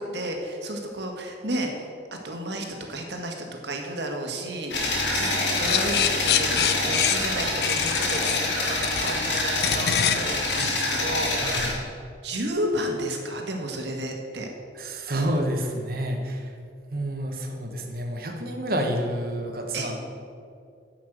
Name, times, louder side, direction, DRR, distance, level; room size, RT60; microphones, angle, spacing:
voice 1, 0.0-1.9 2.2-11.8 12.2-14.5 19.7-19.9, right 1 dB, 75° right, 2 dB, 1.7 m, -32 dB
sound 1, 4.7-11.7, left 2 dB, 80° left, 2.9 m, -26 dB
sound 2, 5.7-11.8, left 9 dB, 60° left, 0.5 m, -27 dB
voice 2, 14.8-16.5 16.9-20.0, right 1 dB, 55° right, 3 dB, 1.4 m, -29 dB
11.0 x 5.9 x 7.8 m, 2.3 s
head